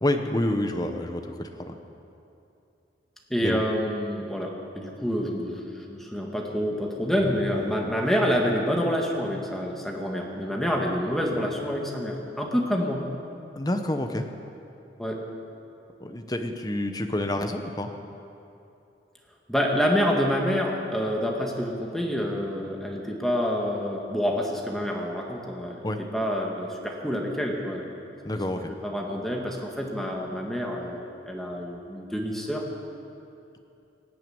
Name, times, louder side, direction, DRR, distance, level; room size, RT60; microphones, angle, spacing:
voice 1, 0.0-1.8 3.4-3.6 13.6-14.3 16.0-17.9 25.8-26.0 28.2-28.7, left 1 dB, 20° left, 6 dB, 1.0 m, -28 dB
voice 2, 3.3-13.0 15.0-15.2 19.5-25.8 26.1-27.9 28.8-32.7, equal, ahead, -1 dB, 1.8 m, -27 dB
17.5 x 9.3 x 8.8 m, 2.8 s
head